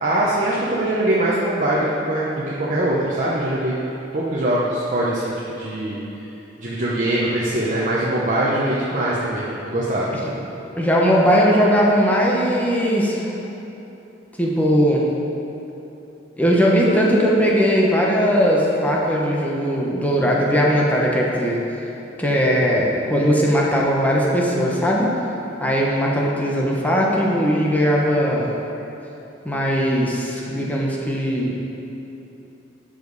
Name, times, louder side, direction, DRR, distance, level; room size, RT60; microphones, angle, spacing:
voice 1, 0.0-3.8 4.1-6.0 6.6-10.2 22.7-22.8, right 1 dB, 45° right, -6 dB, 0.9 m, -22 dB
voice 2, 10.8-13.3 14.4-15.0 16.4-21.6 22.2-25.1 25.6-28.5 29.4-31.6, equal, 10° left, -3 dB, 1.1 m, -19 dB
12.0 x 5.1 x 4.1 m, 3.0 s
head